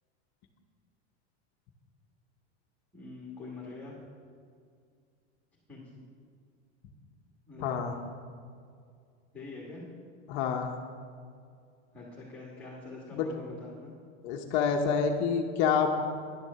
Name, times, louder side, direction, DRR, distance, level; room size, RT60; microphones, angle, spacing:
voice 1, 2.9-3.9 5.7-5.8 7.5-7.9 9.3-9.8 11.9-13.9, left 3 dB, 5° left, -5 dB, 1.6 m, -44 dB
voice 2, 7.6-8.0 10.3-10.8 13.1-13.3 14.2-15.9, left 6 dB, 35° left, 3 dB, 0.8 m, -27 dB
10.5 x 9.2 x 6.7 m, 2.3 s
supercardioid pair, 170°, 34 cm